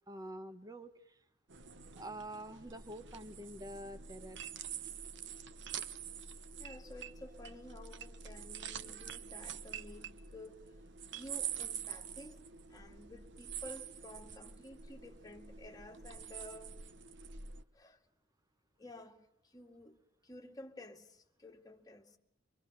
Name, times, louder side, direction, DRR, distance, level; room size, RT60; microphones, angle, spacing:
voice 1, 0.1-1.2 2.0-4.4, right 1 dB, 20° right, 1.2 m, -47 dB
sound 1, 1.5-17.6, right 8 dB, 60° right, 1.1 m, -46 dB
voice 2, 6.6-10.8 11.1-12.4 12.7-16.8 17.7-18.0 18.8-20.0 20.2-22.2, left 1 dB, 20° left, 2.3 m, -52 dB
25.0 x 24.0 x 6.8 m
head